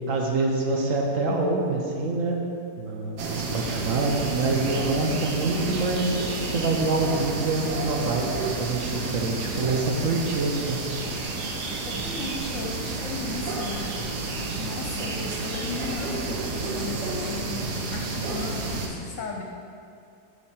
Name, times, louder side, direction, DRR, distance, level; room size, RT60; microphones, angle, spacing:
voice 1, 0.1-2.4 2.8-6.2 6.5-10.8, right 3 dB, 60° right, 1 dB, 1.0 m, -26 dB
sound 1, 3.2-18.9, right 3 dB, 80° right, 1.4 m, -30 dB
voice 2, 11.8-13.9 14.6-19.4, left 4 dB, 60° left, 0 dB, 0.9 m, -36 dB
8.3 x 5.1 x 4.3 m, 2.4 s
omnidirectional pair, 1.7 m